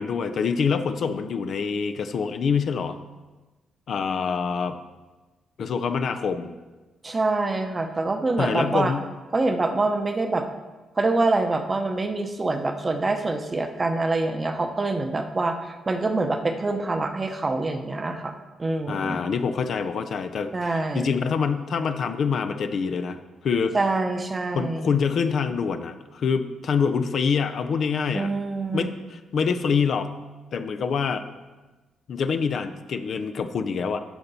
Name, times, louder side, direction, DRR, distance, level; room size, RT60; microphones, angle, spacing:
voice 1, 0.0-3.0 3.9-4.8 5.6-6.5 8.4-9.1 18.9-23.8 24.5-28.3 28.7-30.1 30.5-31.2 32.1-34.0, left 6 dB, 60° left, 8 dB, 0.5 m, -26 dB
voice 2, 7.0-8.9 9.3-10.5 11.0-18.3 18.6-19.2 20.5-21.1 23.7-24.9 28.1-28.9, right 2 dB, 25° right, 6 dB, 0.8 m, -25 dB
12.0 x 4.4 x 4.1 m, 1.2 s
cardioid pair, 95°, 0 cm